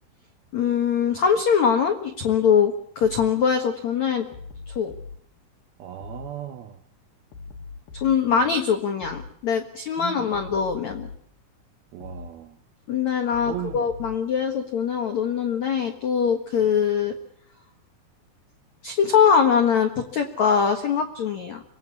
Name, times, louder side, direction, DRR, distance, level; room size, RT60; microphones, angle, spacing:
voice 1, 0.5-4.3 4.7-4.9 8.0-11.1 12.9-17.1 18.8-21.6, left 7 dB, 80° left, 5 dB, 1.6 m, -22 dB
sound 1, 3.0-3.3 4.3-5.2 6.0-6.3 7.3-8.2 9.0-9.3 10.3-11.2 12.0-12.3 13.3-14.2, left 4 dB, 60° left, 2.5 m, -40 dB
voice 2, 5.8-6.8 8.3-8.5 10.0-10.3 11.9-12.6 13.5-13.9, right 12 dB, 75° right, 6 dB, 2.3 m, -36 dB
25.5 x 19.0 x 8.4 m, 0.67 s
omnidirectional pair, 5.8 m